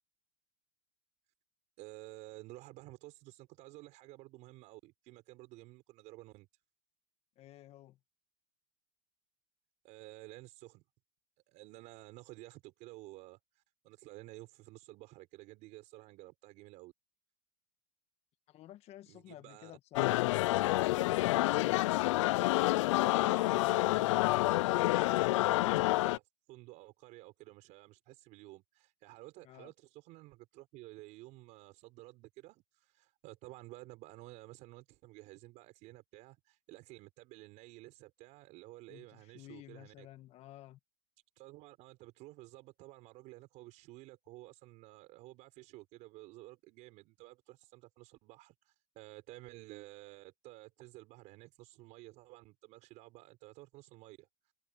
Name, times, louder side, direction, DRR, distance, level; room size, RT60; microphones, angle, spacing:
voice 1, 1.8-6.5 9.8-10.8 11.5-16.9 19.1-19.7 22.7-40.1 41.4-54.5, right 20 dB, 50° right, 4.9 m, -53 dB
voice 2, 7.3-8.0 18.5-21.3 29.4-29.7 38.9-40.8, left 14 dB, 40° left, 1.8 m, -53 dB
sound 1, 20.0-26.2, left 18 dB, 70° left, 0.4 m, -28 dB
supercardioid pair, 120°, 16 cm